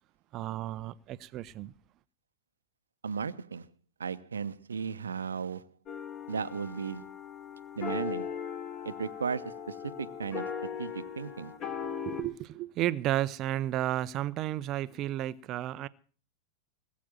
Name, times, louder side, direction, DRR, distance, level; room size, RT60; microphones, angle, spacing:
voice 1, 0.3-1.7 11.8-15.9, right 13 dB, 35° right, 0.7 m, -33 dB
voice 2, 3.0-3.7 4.0-5.7 6.3-7.1 7.8-8.3 8.8-11.5, right 6 dB, 70° right, 0.9 m, -36 dB
sound 1, 5.9-12.2, left 7 dB, 35° left, 3.8 m, -39 dB
19.5 x 8.5 x 7.8 m
figure-of-eight pair, 90°, 0 cm